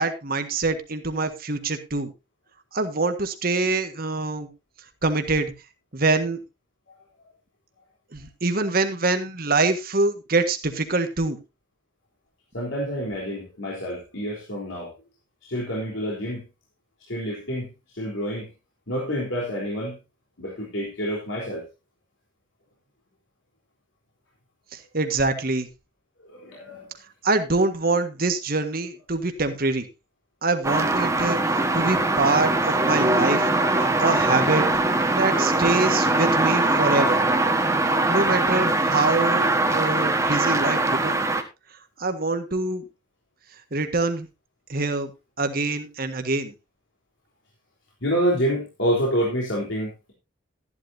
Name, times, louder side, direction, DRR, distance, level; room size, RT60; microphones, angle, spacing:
voice 1, 0.0-2.1 2.7-4.5 5.0-5.5 5.9-6.4 8.1-11.4 24.7-25.7 27.2-29.9 30.4-33.5 33.7-34.7 35.1-37.2 38.1-41.2 42.0-42.8 43.7-44.3 44.7-45.1 45.4-46.5, right 3 dB, 50° right, 8 dB, 1.6 m, -25 dB
voice 2, 12.5-14.9 15.4-16.4 17.0-17.7 17.9-18.5 18.9-19.9 20.4-21.6 26.2-26.9 35.3-35.7 48.0-50.1, equal, 75° left, -3 dB, 3.7 m, -28 dB
sound 1, 30.6-41.4, right 2 dB, 15° right, 1.3 m, -22 dB
14.0 x 11.0 x 2.7 m, 0.26 s
head